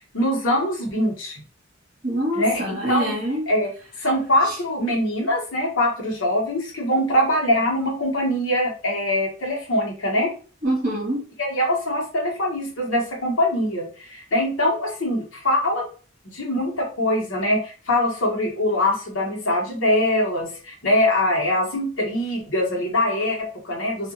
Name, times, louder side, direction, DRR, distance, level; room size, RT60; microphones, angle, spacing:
voice 1, 0.1-1.4 2.3-3.1 3.5-3.7 4.0-10.3 11.4-15.8 16.2-24.1, left 1 dB, 75° left, -1 dB, 1.0 m, -23 dB
voice 2, 2.0-3.4 4.4-4.6 10.6-11.3, right 1 dB, 40° right, -5 dB, 1.4 m, -25 dB
2.7 x 2.4 x 2.6 m, 0.38 s
head